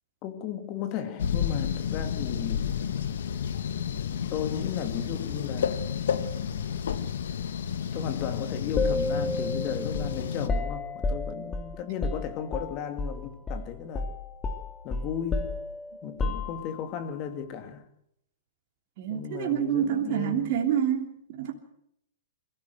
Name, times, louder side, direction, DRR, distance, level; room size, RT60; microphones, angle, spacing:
voice 1, 0.2-2.9 4.3-5.9 7.9-14.1 14.8-15.6 16.0-17.9 19.1-20.4, left 8 dB, 40° left, 2.5 m, -35 dB
sound 1, 1.2-10.5, left 8 dB, 70° left, 1.5 m, -31 dB
sound 2, 8.8-13.2 13.5-13.7 13.9-16.9, left 2 dB, 20° left, 2.3 m, -31 dB
voice 2, 19.0-21.5, right 9 dB, 50° right, 3.1 m, -27 dB
22.0 x 15.0 x 7.9 m
hypercardioid pair, 125°, 0 cm